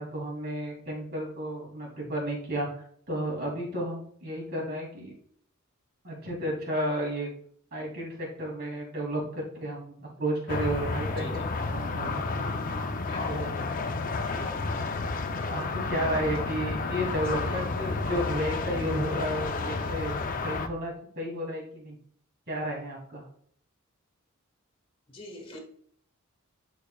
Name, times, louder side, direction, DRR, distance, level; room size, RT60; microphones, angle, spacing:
voice 1, 0.0-2.7 3.1-5.1 6.0-7.3 7.7-12.4 13.2-13.6 15.5-22.0 22.5-23.3, equal, 50° right, -2 dB, 2.8 m, -32 dB
sound 1, 10.5-20.7, left 3 dB, 40° left, 0.6 m, -31 dB
voice 2, 11.1-11.5 13.1-13.3 14.3-14.7 17.2-17.6 19.3-19.4 25.1-25.6, left 2 dB, 25° left, 1 dB, 1.3 m, -44 dB
11.5 x 4.8 x 2.3 m, 0.62 s
head